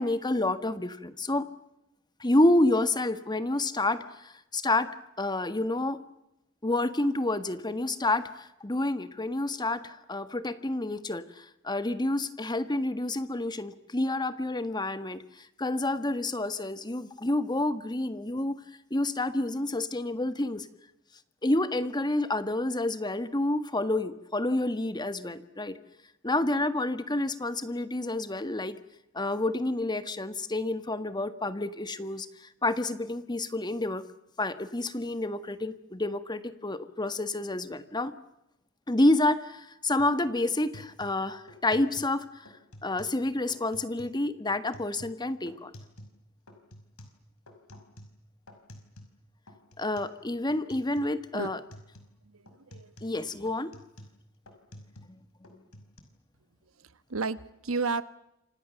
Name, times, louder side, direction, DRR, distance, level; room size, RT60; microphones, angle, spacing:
voice 1, 0.0-1.5 2.2-4.9 5.2-6.0 6.6-15.2 15.6-18.6 18.9-20.7 21.4-25.8 26.2-28.7 29.1-32.3 32.6-34.0 34.4-38.1 38.9-42.2 42.8-45.7 49.8-51.6 53.0-53.7 55.1-55.2, left 2 dB, 20° left, 12 dB, 1.5 m, -29 dB
sound 1, 40.0-40.2 40.5-42.2 42.5-43.2 43.5-44.2 44.5-46.2 46.5-49.2 49.5-50.2 50.5-51.2 51.5-52.2 52.5-55.2 55.4-56.0, left 1 dB, 85° left, 5.4 m, -51 dB
voice 2, 52.2-53.5 56.8-58.0, right 4 dB, 70° right, 15 dB, 1.2 m, -34 dB
29.0 x 26.5 x 7.0 m, 0.89 s
head